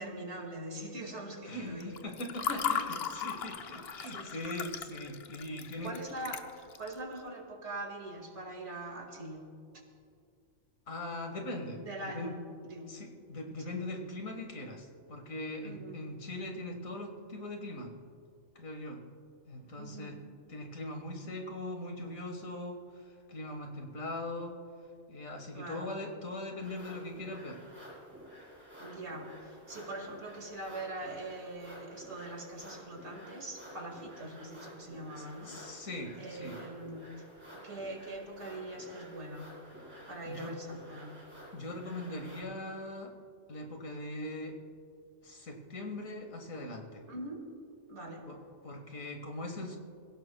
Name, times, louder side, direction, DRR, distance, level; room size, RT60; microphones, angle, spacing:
voice 1, 0.0-1.9 2.5-3.1 3.6-3.7 4.0-4.7 5.6-9.4 11.8-12.4 12.6-12.9 13.6-13.7 15.6-16.0 19.8-20.2 25.5-25.9 28.8-35.9 36.2-37.1 37.5-39.5 40.1-41.2 47.1-47.5 47.9-48.3, right 1 dB, 60° right, 2 dB, 2.3 m, -43 dB
voice 2, 1.4-5.9 10.9-12.3 12.9-17.9 18.6-19.0 19.5-20.2 20.5-22.8 23.1-24.5 25.1-27.6 35.5-36.6 40.3-40.5 41.5-43.1 43.5-44.6 45.2-47.0 48.3-48.4 48.6-49.8, left 1 dB, 90° left, 3 dB, 2.0 m, -41 dB
Water / Fill (with liquid), 1.8-6.9, left 7 dB, 55° left, 0.9 m, -37 dB
sound 1, 26.6-42.4, equal, 10° right, 3.9 m, -51 dB
26.0 x 16.5 x 2.3 m, 2.3 s
omnidirectional pair, 1.4 m